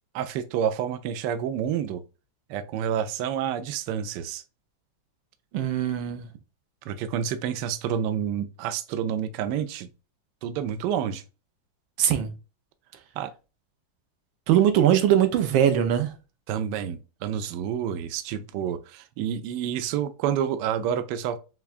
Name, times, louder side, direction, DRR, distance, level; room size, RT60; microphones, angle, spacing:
voice 1, 0.1-2.0 2.5-4.4 6.9-9.9 10.4-11.2 13.2-13.3 16.5-21.4, right 9 dB, 75° right, 1.1 m, -29 dB
voice 2, 5.5-6.3 12.0-12.3 14.5-16.1, right 10 dB, 90° right, 1.5 m, -21 dB
5.7 x 2.2 x 2.4 m
omnidirectional pair, 2.1 m